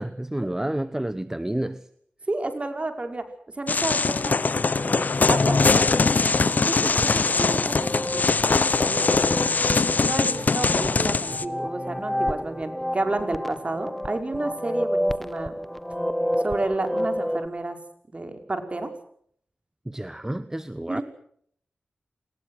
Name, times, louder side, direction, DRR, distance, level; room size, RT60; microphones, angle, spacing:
voice 1, 0.0-1.8 19.9-21.0, right 1 dB, 15° right, 13 dB, 1.1 m, -30 dB
voice 2, 2.3-3.3 3.6-4.4 5.3-5.9 6.5-9.1 10.0-15.5 16.4-17.8 18.1-18.9 20.9-21.0, right 2 dB, 35° right, 6 dB, 5.3 m, -31 dB
sound 1, 3.7-11.4, left 4 dB, 55° left, 1.1 m, -22 dB
sound 2, 4.5-17.5, equal, 5° left, 1.5 m, -31 dB
29.5 x 20.5 x 6.5 m, 0.64 s
cardioid pair, 60°, 3 cm